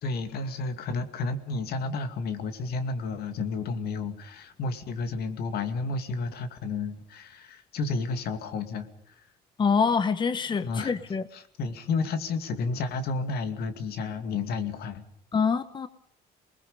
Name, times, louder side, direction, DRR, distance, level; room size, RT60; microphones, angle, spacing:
voice 1, 0.0-9.1 10.6-10.9 11.3-15.0, left 3 dB, 70° left, 9 dB, 2.5 m, -31 dB
voice 2, 9.6-11.2 15.3-15.9, left 5 dB, 25° left, 13 dB, 0.9 m, -25 dB
28.0 x 20.5 x 5.4 m, 0.70 s
cardioid pair, 110°, 17 cm